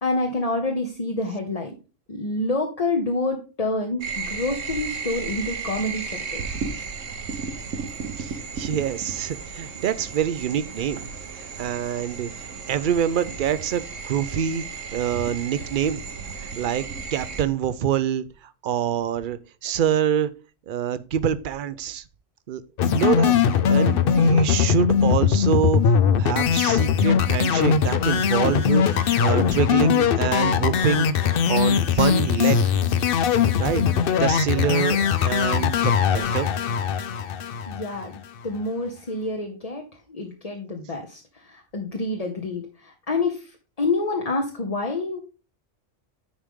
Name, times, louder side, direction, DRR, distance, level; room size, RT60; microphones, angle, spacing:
voice 1, 0.0-1.7 2.1-6.6 37.7-45.2, left 2 dB, 35° left, 1.0 m, -28 dB
sound 1, 4.0-17.4, right 5 dB, 85° right, 1.4 m, -34 dB
voice 2, 8.2-11.0 11.4-14.6 14.9-16.0 16.4-16.8 17.1-18.2 18.6-20.3 20.7-22.0 22.5-22.6 22.9-25.9 26.2-32.7 33.6-33.8 34.1-36.5, right 9 dB, 55° right, 0.6 m, -26 dB
sound 2, 22.8-38.2, left 7 dB, 55° left, 0.7 m, -20 dB
10.0 x 5.0 x 3.6 m
omnidirectional pair, 1.3 m